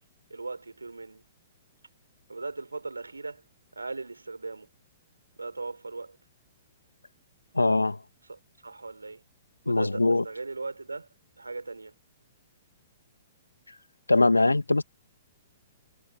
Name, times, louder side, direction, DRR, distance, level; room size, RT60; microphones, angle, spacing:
voice 1, 0.3-1.2 2.3-3.4 3.7-4.7 5.4-6.2 8.3-9.2 9.6-11.1 11.4-11.9, right 3 dB, 85° right, 5.3 m, -38 dB
voice 2, 7.5-8.0 9.7-10.2 14.1-14.8, left 2 dB, 85° left, 2.3 m, -22 dB
figure-of-eight pair, 115°, 0 cm